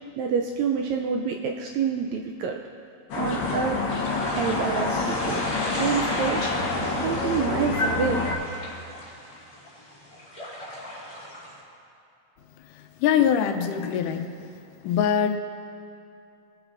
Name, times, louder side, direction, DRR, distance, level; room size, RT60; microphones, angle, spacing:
voice 1, 0.2-2.6 3.2-3.8 4.3-5.4 5.8-6.4 7.0-8.2, right 6 dB, 80° right, 2 dB, 1.6 m, -27 dB
sound 1, 3.1-8.3, left 3 dB, 60° left, 1.3 m, -27 dB
sound 2, 3.2-11.6, left 1 dB, 15° left, 1.9 m, -36 dB
voice 2, 13.0-14.3 14.8-15.4, left 8 dB, 85° left, 6 dB, 2.2 m, -22 dB
22.0 x 8.1 x 2.6 m, 2.6 s
omnidirectional pair, 3.6 m